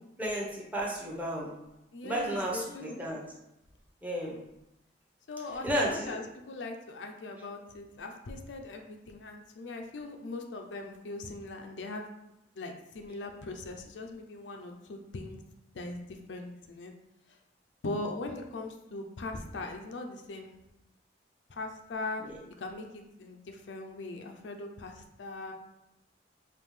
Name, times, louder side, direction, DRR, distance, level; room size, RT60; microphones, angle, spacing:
voice 1, 0.2-1.5 2.0-3.2 4.0-4.4 5.6-6.2 22.2-22.3, equal, 10° right, -4 dB, 0.9 m, -32 dB
voice 2, 1.9-3.0 5.3-12.1 12.6-15.4 15.7-16.9 17.3-17.4 17.8-20.5 21.5-22.3 22.6-25.5, left 2 dB, 85° left, 3 dB, 0.5 m, -40 dB
5.2 x 2.4 x 3.2 m, 0.88 s
head